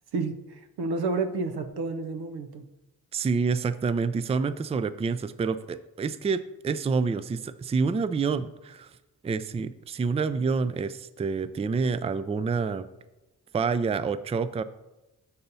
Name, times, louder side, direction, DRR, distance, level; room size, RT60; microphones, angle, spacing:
voice 1, 0.0-2.7, right 3 dB, 85° right, 8 dB, 0.7 m, -30 dB
voice 2, 3.1-8.9 9.2-12.9 13.5-14.6, right 5 dB, 20° right, 14 dB, 0.3 m, -28 dB
6.7 x 4.2 x 5.4 m, 1.0 s
cardioid pair, 55°, 37 cm